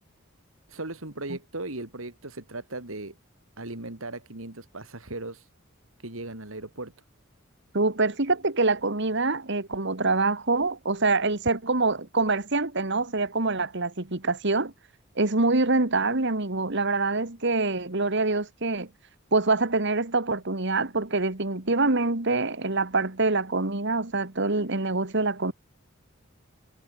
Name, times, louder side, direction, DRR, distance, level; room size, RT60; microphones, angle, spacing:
voice 1, 0.7-3.2 3.6-5.5 6.0-6.9, right 2 dB, 80° right, 3.7 m, -37 dB
voice 2, 7.7-14.7 15.2-18.9 19.3-25.5, right 3 dB, 60° right, 2.1 m, -25 dB
head